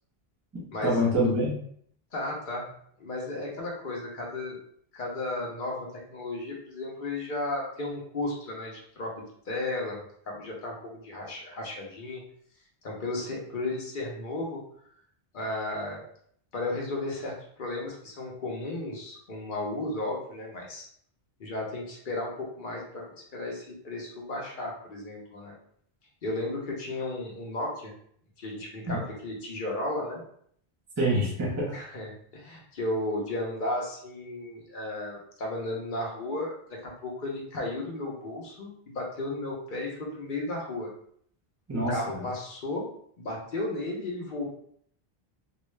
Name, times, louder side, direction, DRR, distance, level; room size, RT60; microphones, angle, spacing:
voice 1, 0.5-1.5 28.9-29.0 31.0-31.7 41.7-42.2, equal, 15° right, -5 dB, 0.8 m, -26 dB
voice 2, 2.1-2.7 3.0-4.6 4.9-12.2 12.8-14.6 15.3-16.0 16.5-20.9 21.4-25.5 26.2-27.9 28.4-30.2 31.7-40.9 41.9-42.9 43.2-44.5, left 2 dB, 55° left, -1 dB, 0.9 m, -34 dB
2.4 x 2.3 x 3.1 m, 0.63 s
omnidirectional pair, 1.0 m